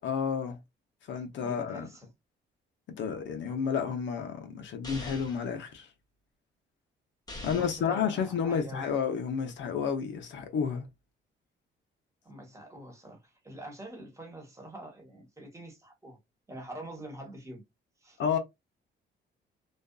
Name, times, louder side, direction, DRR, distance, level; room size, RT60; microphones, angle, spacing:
voice 1, 0.0-0.6 1.1-1.9 3.0-5.9 7.4-10.9 18.2-18.4, left 7 dB, 70° left, 0.7 m, -31 dB
voice 2, 1.4-2.1 7.4-8.9 12.2-16.2 16.5-17.6 18.0-18.2, right 1 dB, 15° right, 1.2 m, -45 dB
sound 1, 4.8-5.5 7.3-7.9, left 1 dB, 20° left, 1.0 m, -42 dB
2.5 x 2.3 x 2.3 m
cardioid pair, 90°, 20 cm